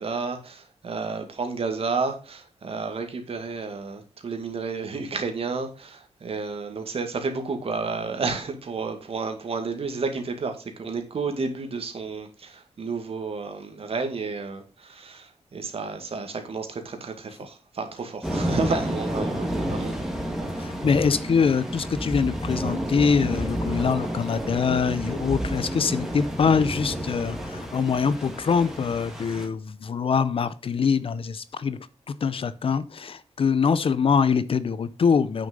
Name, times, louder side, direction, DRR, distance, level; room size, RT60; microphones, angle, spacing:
voice 1, 0.0-20.0, right 4 dB, 55° right, 6 dB, 2.1 m, -31 dB
sound 1, 18.2-29.5, equal, 5° right, 2.0 m, -30 dB
voice 2, 20.6-31.8 32.1-35.5, left 6 dB, 50° left, 16 dB, 0.6 m, -24 dB
9.1 x 6.5 x 5.3 m, 0.33 s
wide cardioid pair, 165°, 12 cm